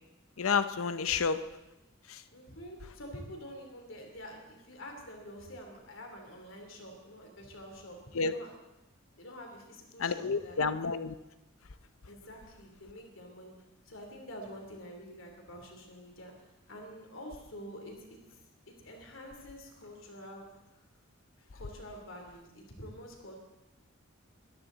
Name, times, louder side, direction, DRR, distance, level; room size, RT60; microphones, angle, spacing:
voice 1, 0.4-1.4 2.1-2.2 8.1-8.3 10.0-11.1, left 5 dB, 85° left, 12 dB, 0.7 m, -30 dB
voice 2, 2.3-8.5 9.2-10.6 12.1-13.5 13.8-16.3 16.7-18.4 18.7-20.5 21.5-23.4, equal, 65° left, 2 dB, 3.3 m, -47 dB
22.5 x 14.0 x 4.0 m, 0.95 s
head